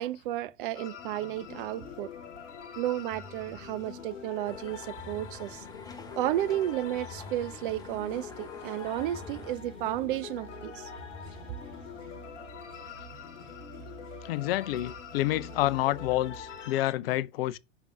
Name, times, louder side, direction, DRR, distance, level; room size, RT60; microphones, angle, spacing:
voice 1, 0.0-2.1 2.8-5.6 6.2-10.9, right 13 dB, 45° right, 0.4 m, -32 dB
sound 1, 0.7-16.9, left 8 dB, 70° left, 1.1 m, -45 dB
sound 2, 1.3-16.7, right 6 dB, 85° right, 1.0 m, -51 dB
sound 3, 4.4-9.6, left 4 dB, 10° left, 1.0 m, -49 dB
voice 2, 14.2-17.6, left 15 dB, 50° left, 0.5 m, -28 dB
6.0 x 3.6 x 4.8 m
figure-of-eight pair, 95°, 37 cm